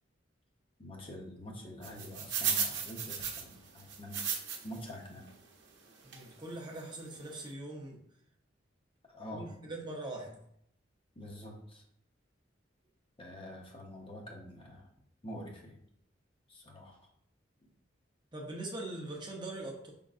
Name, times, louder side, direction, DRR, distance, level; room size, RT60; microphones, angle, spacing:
voice 1, 0.8-4.2 4.6-5.3 9.1-9.5 11.2-11.8 13.2-14.9 15.2-15.8 16.5-17.0, equal, 30° left, 0 dB, 0.7 m, -46 dB
sound 1, 1.8-4.8 5.3-5.4 6.1-6.3 6.8-6.9 7.1-7.3, right 7 dB, 75° right, 0.7 m, -35 dB
voice 2, 6.0-8.0 9.3-10.5 18.3-19.9, right 2 dB, 25° right, -1 dB, 0.7 m, -42 dB
5.1 x 3.6 x 2.4 m, 0.71 s
head